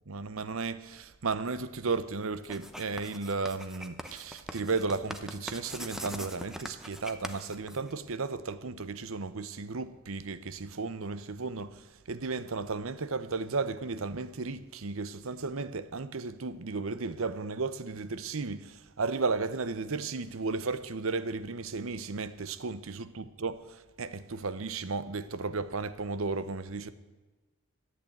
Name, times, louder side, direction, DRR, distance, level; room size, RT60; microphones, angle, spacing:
voice 1, 0.1-26.9, right 4 dB, 65° right, 0.8 m, -34 dB
Writing, 2.4-8.3, equal, ahead, 0.8 m, -42 dB
13.5 x 8.9 x 9.0 m
head